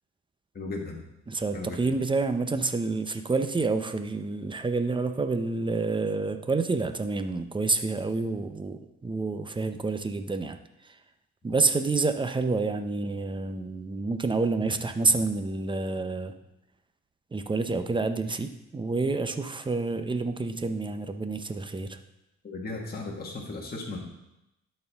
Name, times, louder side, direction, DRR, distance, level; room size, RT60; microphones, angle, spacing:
voice 1, 0.5-1.1 1.5-1.8 22.4-24.0, left 3 dB, 30° left, -1 dB, 1.5 m, -36 dB
voice 2, 1.3-11.0 11.4-16.3 17.3-22.0, right 3 dB, 15° right, 8 dB, 0.6 m, -28 dB
12.0 x 4.5 x 3.5 m, 0.90 s
cardioid pair, 90°, 30 cm